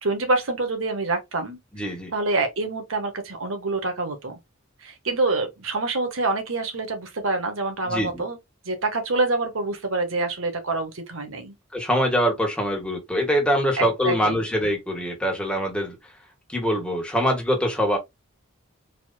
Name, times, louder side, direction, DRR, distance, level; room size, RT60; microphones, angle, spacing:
voice 1, 0.0-1.6 2.1-4.3 4.8-8.4 8.6-11.5 13.8-14.4, right 3 dB, 85° right, 1.4 m, -26 dB
voice 2, 1.7-2.1 7.8-8.2 11.7-16.1 16.5-18.0, equal, 5° left, 1.5 m, -24 dB
4.6 x 4.1 x 2.3 m
head